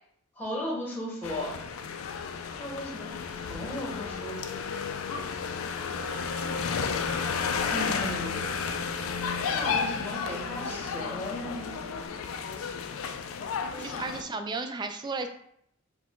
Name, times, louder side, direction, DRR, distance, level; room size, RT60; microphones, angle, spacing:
voice 1, 0.4-1.6 2.6-4.6 7.7-8.5 9.5-11.7 13.7-14.0, left 1 dB, 10° left, -4 dB, 1.1 m, -36 dB
sound 1, 1.2-14.2, left 6 dB, 85° left, 0.4 m, -32 dB
Wind instrument woodwind instrument, 5.8-10.5, right 3 dB, 50° right, 1.3 m, -44 dB
sound 2, 7.1-12.1, right 2 dB, 70° right, 1.0 m, -47 dB
voice 2, 13.8-15.3, right 3 dB, 20° right, 7 dB, 0.3 m, -34 dB
4.6 x 2.2 x 3.6 m, 0.71 s
head